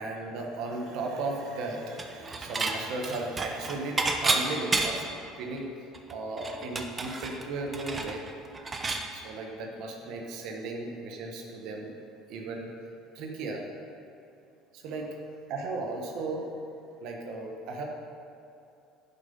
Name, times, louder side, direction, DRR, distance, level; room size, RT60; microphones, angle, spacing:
voice 1, 0.0-5.1 5.4-8.2 9.1-11.9 12.3-12.7 13.1-13.6 14.7-15.2 15.5-16.5 17.0-17.8, right 3 dB, 70° right, 1 dB, 1.2 m, -35 dB
Dishes pots and pans / Chink clink, 2.0-2.8 3.0-5.2 5.6-5.7 5.9-9.1, right 3 dB, 20° right, 0.8 m, -30 dB
10.5 x 5.6 x 5.4 m, 2.7 s
supercardioid pair, 110°, 0 cm